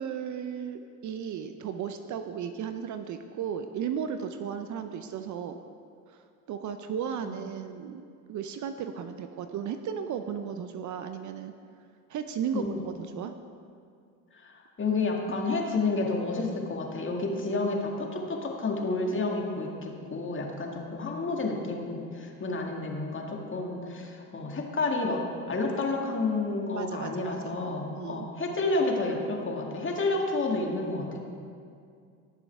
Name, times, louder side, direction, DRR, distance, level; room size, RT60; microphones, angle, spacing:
voice 1, 0.0-5.6 6.1-6.2 6.5-11.5 12.1-13.3 17.5-17.6 26.8-27.6 27.9-28.3, right 8 dB, 45° right, 8 dB, 0.6 m, -35 dB
voice 2, 12.5-12.8 14.4-25.2 25.5-31.2, left 3 dB, 30° left, 0 dB, 2.0 m, -30 dB
18.0 x 7.0 x 3.5 m, 2.3 s
hypercardioid pair, 75°, 43 cm